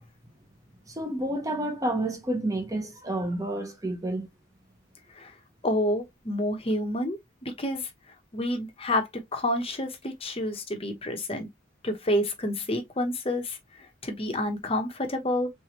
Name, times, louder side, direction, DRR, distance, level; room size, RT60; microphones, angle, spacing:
voice 1, 0.9-4.3, right 1 dB, 15° right, 1.0 m, -30 dB
voice 2, 5.6-7.9 8.3-11.5 11.8-13.6 14.0-15.5, left 1 dB, 30° left, 1.0 m, -29 dB
3.5 x 3.3 x 3.0 m
head